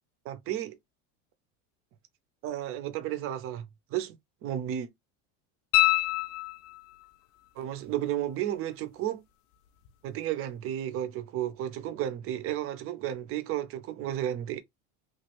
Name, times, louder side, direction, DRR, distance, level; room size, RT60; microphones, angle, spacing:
voice 1, 0.2-0.8 2.4-4.9 7.6-9.2 10.0-14.6, right 12 dB, 40° right, 0.6 m, -33 dB
sound 1, 5.7-7.1 9.9-10.0, left 19 dB, 60° left, 0.6 m, -26 dB
3.0 x 2.5 x 2.9 m
supercardioid pair, 135°, 35 cm